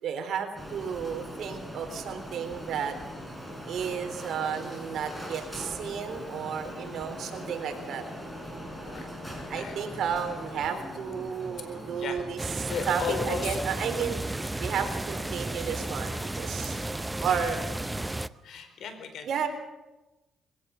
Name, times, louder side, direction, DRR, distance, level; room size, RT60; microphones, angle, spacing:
voice 1, 0.0-2.9 3.7-8.7 9.5-16.8 17.2-17.6 19.2-19.5, right 7 dB, 70° right, 6 dB, 3.8 m, -33 dB
Printer, 0.6-18.2, equal, 5° left, 6.0 m, -42 dB
voice 2, 6.7-7.0 8.8-9.9 12.0-12.2 12.7-13.6 17.3-17.5 18.4-19.3, left 6 dB, 70° left, 8 dB, 4.2 m, -36 dB
sound 1, 12.4-18.3, right 2 dB, 10° right, 0.7 m, -33 dB
22.0 x 17.0 x 7.1 m, 1.0 s
cardioid pair, 90°, 0 cm